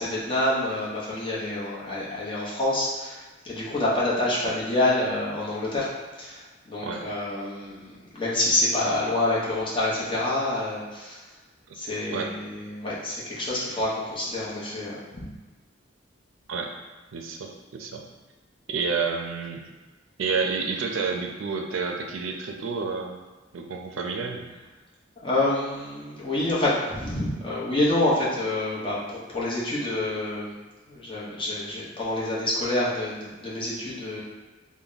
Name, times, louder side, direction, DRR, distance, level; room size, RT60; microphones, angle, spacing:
voice 1, 0.0-5.9 6.2-11.2 11.7-15.2 25.2-30.5 30.9-34.2, left 1 dB, 25° left, -7 dB, 0.9 m, -27 dB
voice 2, 17.1-18.0 18.7-19.6 20.2-23.2 23.5-24.6, right 5 dB, 70° right, 2 dB, 0.4 m, -30 dB
3.3 x 2.2 x 3.9 m, 1.3 s
head